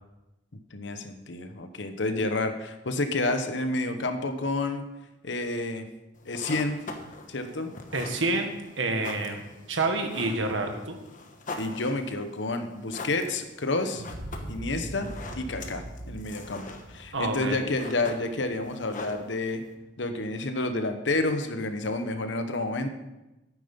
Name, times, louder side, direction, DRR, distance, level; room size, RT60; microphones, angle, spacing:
voice 1, 0.7-4.8 5.2-5.9 6.2-6.8 7.3-7.7 11.6-14.0 14.5-15.1 15.4-19.6 20.0-22.9, left 2 dB, 70° left, 8 dB, 1.1 m, -29 dB
sound 1, 6.1-19.7, left 3 dB, 45° left, 1.2 m, -44 dB
voice 2, 7.9-9.4 9.7-11.0 17.1-17.6, right 2 dB, 90° right, 5 dB, 1.6 m, -28 dB
sound 2, 13.9-18.7, right 1 dB, 60° right, 1.7 m, -41 dB
9.4 x 9.2 x 5.4 m, 1.0 s
head